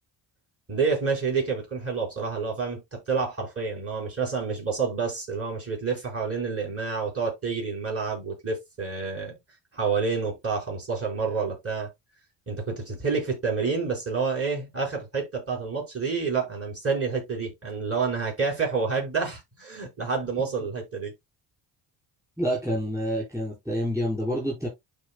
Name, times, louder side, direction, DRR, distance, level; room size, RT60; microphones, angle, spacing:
voice 1, 0.7-9.4 9.7-11.9 12.5-21.1, right 5 dB, 30° right, 4.7 m, -28 dB
voice 2, 22.4-24.7, equal, 5° right, 4.3 m, -28 dB
12.0 x 4.5 x 2.2 m
cardioid pair, 85°, 47 cm